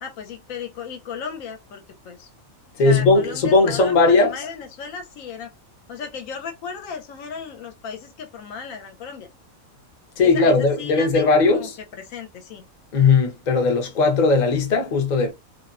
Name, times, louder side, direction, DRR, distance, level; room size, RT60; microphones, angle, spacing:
voice 1, 0.0-2.3 2.8-5.5 5.9-9.3 10.2-11.7 12.0-12.6, left 6 dB, 75° left, 1.0 m, -35 dB
voice 2, 2.8-4.4 10.2-11.8 12.9-15.3, left 3 dB, 45° left, 0.6 m, -18 dB
2.5 x 2.1 x 2.4 m
omnidirectional pair, 1.5 m